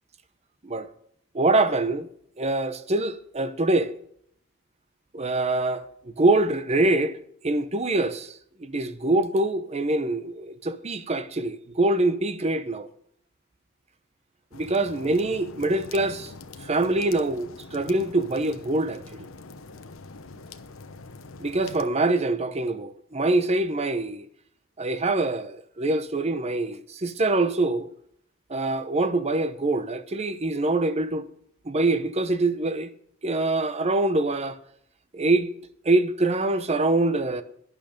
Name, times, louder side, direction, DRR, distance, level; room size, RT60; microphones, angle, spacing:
voice 1, 1.3-2.1 2.4-3.9 5.1-5.9 6.2-7.2 7.4-12.9 14.5-16.3 16.6-19.3 21.4-24.2 24.8-27.9 28.5-31.3 31.7-32.9 33.2-34.6 35.1-35.5 35.8-37.4, right 2 dB, 30° right, 0.8 m, -24 dB
sound 1, 14.5-21.9, left 3 dB, 70° left, 0.9 m, -44 dB
12.0 x 11.0 x 5.2 m
head